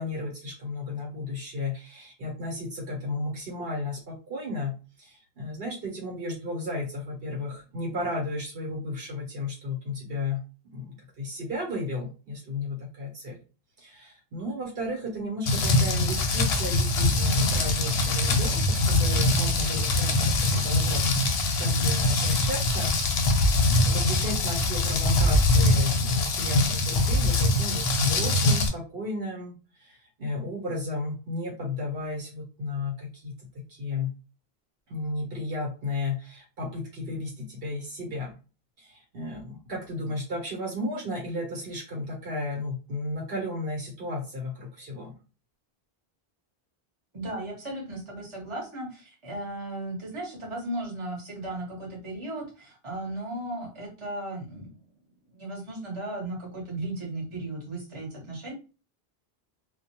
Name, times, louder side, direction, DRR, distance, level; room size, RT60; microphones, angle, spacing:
voice 1, 0.0-10.4 10.7-13.4 13.8-21.1 21.6-22.9 23.7-34.1 34.9-38.3 38.8-45.1, left 2 dB, 65° right, -2 dB, 1.1 m, -34 dB
Rain, 15.5-28.7, left 2 dB, 80° left, 0.8 m, -23 dB
voice 2, 47.1-54.9 55.3-58.5, right 1 dB, 30° right, -3 dB, 1.0 m, -36 dB
2.3 x 2.2 x 2.8 m, 0.34 s
omnidirectional pair, 1.1 m